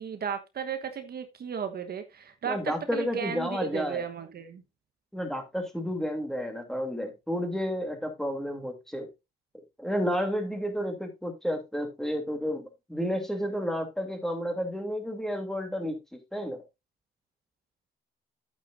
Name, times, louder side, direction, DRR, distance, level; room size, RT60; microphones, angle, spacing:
voice 1, 0.0-4.6, right 7 dB, 50° right, 1.2 m, -35 dB
voice 2, 2.4-4.0 5.1-9.1 9.8-12.6 12.9-16.6, equal, ahead, 2.9 m, -31 dB
10.0 x 9.0 x 2.6 m
cardioid pair, 90°, 20 cm